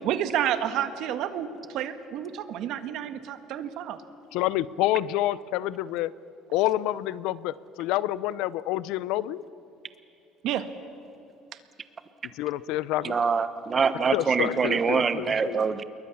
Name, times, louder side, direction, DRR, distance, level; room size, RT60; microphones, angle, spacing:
voice 1, 0.0-4.0 10.4-10.7, right 10 dB, 60° right, 10 dB, 1.6 m, -30 dB
voice 2, 4.3-6.1 6.5-9.4 12.4-13.2 14.1-15.6, left 14 dB, 75° left, 18 dB, 0.7 m, -28 dB
voice 3, 13.0-15.8, right 5 dB, 25° right, 12 dB, 1.2 m, -24 dB
28.0 x 22.0 x 7.3 m, 2.8 s
cardioid pair, 155°, 0 cm